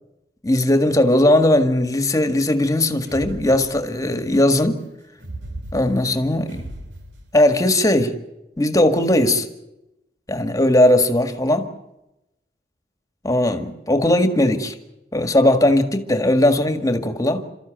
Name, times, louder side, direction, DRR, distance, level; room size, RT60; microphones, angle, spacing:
voice 1, 0.4-4.8 5.7-6.7 7.3-8.2 8.6-9.5 10.3-11.7 13.2-14.7 15.1-17.5, left 1 dB, 20° left, 1.8 m, -18 dB
sound 1, 3.0-4.2 5.2-7.6, right 1 dB, 90° right, 2.8 m, -37 dB
28.5 x 14.0 x 9.2 m
head